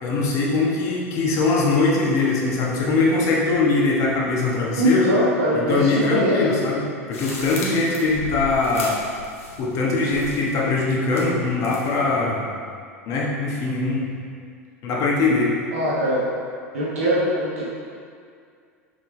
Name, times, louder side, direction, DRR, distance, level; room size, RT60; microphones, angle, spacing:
voice 1, 0.0-5.1 5.5-9.0 9.6-12.5 13.1-14.1 14.8-15.5, left 3 dB, 40° left, -3 dB, 1.4 m, -21 dB
voice 2, 4.8-6.5 15.7-16.2 16.7-17.6, equal, 65° right, -7 dB, 1.3 m, -21 dB
sound 1, 7.1-9.7 10.0-10.6 11.1-12.0, left 2 dB, 70° left, 1.2 m, -35 dB
5.9 x 5.4 x 3.9 m, 2.2 s
figure-of-eight pair, 80°, 8 cm